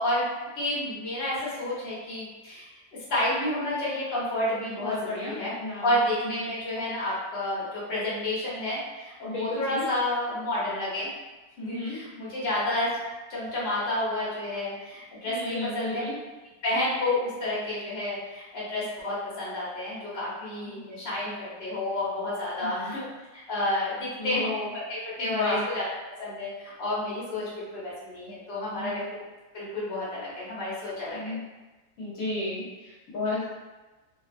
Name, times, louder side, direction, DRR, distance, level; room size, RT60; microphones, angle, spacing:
voice 1, 0.0-2.7 3.1-5.5 5.8-11.1 11.6-13.0 13.3-16.0 16.6-23.1 23.5-25.8 26.1-29.0 29.5-31.3, left 1 dB, 50° left, -8 dB, 1.1 m, -30 dB
voice 2, 4.8-5.9 9.2-9.8 11.7-12.0 15.3-16.2 20.6-20.8 22.6-22.9 24.2-24.5 25.2-25.6 28.8-29.0 31.1-31.4 32.0-33.4, left 2 dB, 75° left, -8 dB, 1.1 m, -33 dB
2.5 x 2.2 x 2.4 m, 1.2 s
omnidirectional pair, 1.5 m